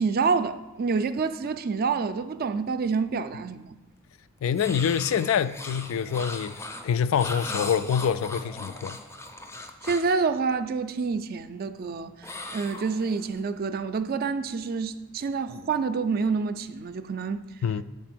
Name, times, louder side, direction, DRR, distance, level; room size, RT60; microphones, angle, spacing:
voice 1, 0.0-3.8 9.8-17.4, right 5 dB, 45° right, 0.4 m, -27 dB
voice 2, 4.4-6.5 6.8-9.0 17.6-17.8, left 7 dB, 80° left, 0.3 m, -25 dB
sound 1, 4.5-10.2 12.2-13.4, left 2 dB, 15° left, 0.4 m, -38 dB
7.4 x 4.2 x 6.0 m
head